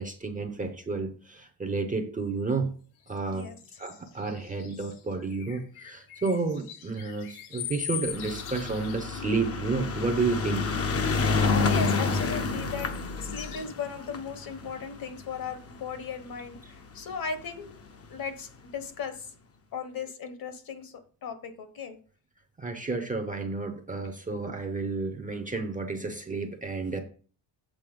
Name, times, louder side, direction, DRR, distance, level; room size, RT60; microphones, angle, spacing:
voice 1, 0.0-2.7 3.1-3.5 3.8-10.7 11.2-11.3 22.6-27.0, right 3 dB, 15° right, 5 dB, 0.6 m, -31 dB
sound 1, 3.1-9.3 9.7-10.4 11.0-12.5 12.9-13.6, left 10 dB, 85° left, 1.0 m, -42 dB
voice 2, 3.3-3.8 11.7-17.7 18.1-19.3 19.7-22.0, left 6 dB, 45° left, 9 dB, 1.0 m, -37 dB
sound 2, 8.1-16.6 17.4-17.5 17.7-17.8 18.0-18.1, left 4 dB, 30° left, 0.6 m, -29 dB
7.7 x 4.0 x 5.1 m, 0.41 s
cardioid pair, 165°, 48 cm